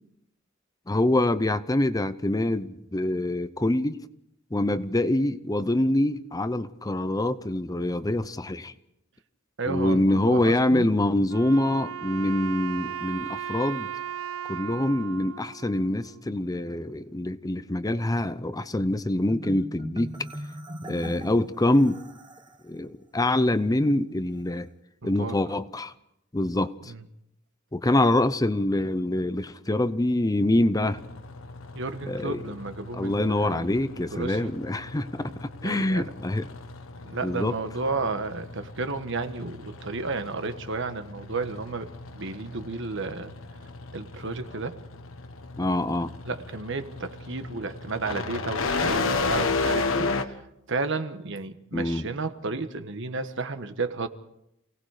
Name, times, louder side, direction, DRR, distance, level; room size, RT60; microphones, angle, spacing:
voice 1, 0.9-4.0 4.5-8.7 9.7-13.9 14.5-20.2 20.9-22.0 22.7-24.7 25.0-25.9 26.3-26.9 27.7-31.0 32.1-32.4 33.0-36.5 37.2-37.6 45.6-46.1 51.7-52.1, left 1 dB, 20° left, 0.7 m, -25 dB
voice 2, 9.6-10.9 25.0-25.4 26.9-27.0 31.7-33.7 34.0-34.5 35.6-36.1 37.0-41.9 42.1-43.3 43.9-44.8 46.2-50.4 50.7-54.1, right 3 dB, 65° right, 1.4 m, -32 dB
Wind instrument woodwind instrument, 11.3-16.5, right 8 dB, 80° right, 0.8 m, -36 dB
Marimba xylophone, 19.3-22.6, equal, 20° right, 1.4 m, -40 dB
sound 1, 30.9-50.2, left 3 dB, 75° left, 1.4 m, -34 dB
28.5 x 18.5 x 4.9 m
head